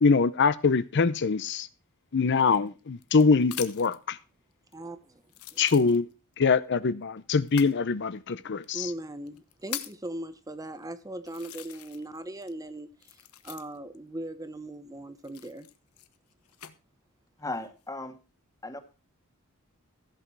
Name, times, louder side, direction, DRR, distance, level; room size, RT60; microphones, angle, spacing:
voice 1, 0.0-1.7 2.1-4.2 5.6-6.1 6.4-8.9, left 4 dB, 55° left, 0.6 m, -23 dB
sound 1, 2.4-4.0 4.7-4.8 5.3-6.3 7.4-7.8 8.6-8.7 9.3-10.1 10.7-10.8 11.3-12.2 12.4-14.0 15.2-16.7 17.4-17.9, left 12 dB, 85° left, 1.2 m, -42 dB
voice 2, 4.7-5.2 5.5-5.6 8.7-15.7, right 1 dB, 15° right, 0.8 m, -39 dB
voice 3, 17.4-18.2 18.6-18.8, left 2 dB, 15° left, 1.6 m, -36 dB
15.5 x 8.2 x 4.6 m
head